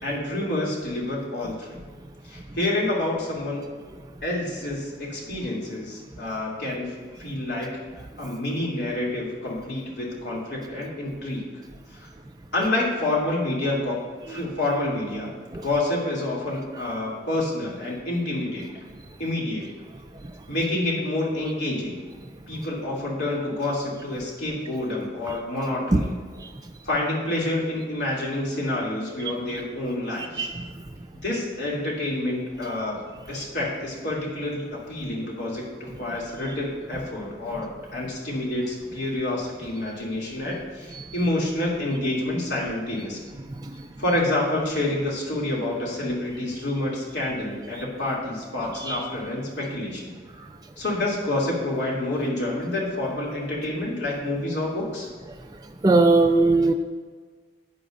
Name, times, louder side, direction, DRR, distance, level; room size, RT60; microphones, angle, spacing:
voice 1, 0.0-1.8 2.3-3.6 4.2-6.9 7.2-7.7 8.2-11.4 11.9-12.1 12.5-14.0 14.3-15.3 15.6-18.7 19.2-19.6 20.5-22.0 22.5-26.1 26.8-30.5 31.2-33.0 33.3-43.2 44.0-50.1 50.8-55.1, left 1 dB, 70° left, -4 dB, 2.9 m, -28 dB
voice 2, 30.2-30.7 40.9-41.1 43.6-43.7 48.8-49.0 55.8-56.7, right 3 dB, 20° right, 3 dB, 0.3 m, -21 dB
14.0 x 9.6 x 2.6 m, 1.5 s
head